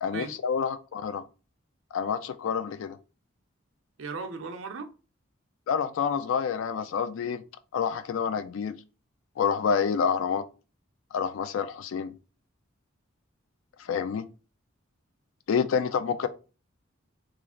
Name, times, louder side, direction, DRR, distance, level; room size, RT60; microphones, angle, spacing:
voice 1, 0.0-1.2 1.9-3.0 5.7-7.4 7.7-8.7 9.4-10.4 11.1-12.1 13.8-14.2 15.5-16.3, left 6 dB, 75° left, 0.3 m, -28 dB
voice 2, 4.0-4.9, right 4 dB, 75° right, 0.5 m, -36 dB
3.1 x 2.4 x 3.6 m
head